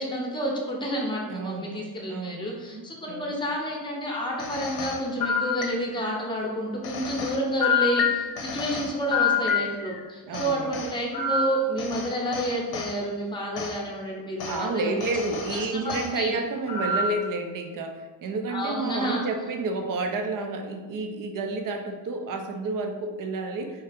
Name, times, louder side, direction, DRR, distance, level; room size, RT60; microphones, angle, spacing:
voice 1, 0.0-14.9 15.7-16.3 18.5-19.3, equal, 10° left, -1 dB, 0.8 m, -30 dB
voice 2, 1.3-1.7 2.1-3.3 10.3-10.7 14.5-23.8, right 3 dB, 45° right, 4 dB, 0.6 m, -30 dB
sound 1, 4.4-6.2 6.8-10.0 10.3-12.9 13.5-13.8 14.4-14.6 15.0-16.1 16.7-17.3, left 5 dB, 50° left, 0.7 m, -28 dB
4.5 x 2.7 x 3.4 m, 1.3 s
cardioid pair, 120°, 49 cm